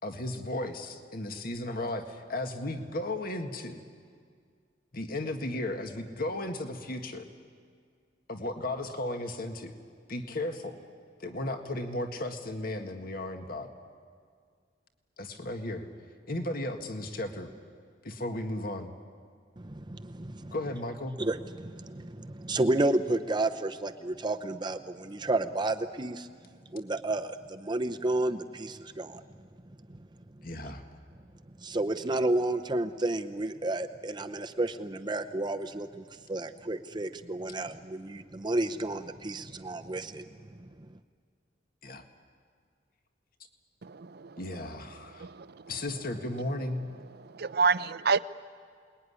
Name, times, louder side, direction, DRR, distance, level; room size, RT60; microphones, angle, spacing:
voice 1, 0.0-3.8 4.9-7.3 8.3-9.7 10.1-10.8 11.2-13.7 15.2-15.9 16.3-17.5 18.0-18.9 20.5-21.2 30.4-30.8 41.8-42.0 44.4-45.3 45.7-46.9, left 1 dB, 55° left, 6 dB, 1.8 m, -35 dB
voice 2, 19.6-20.5 21.2-26.3 26.7-29.2 29.9-30.0 31.6-40.6, right 2 dB, 25° right, 6 dB, 0.8 m, -31 dB
voice 3, 43.8-44.4 45.2-45.6 47.2-48.2, right 5 dB, 60° right, 15 dB, 0.6 m, -28 dB
28.0 x 20.5 x 9.9 m, 2.1 s
head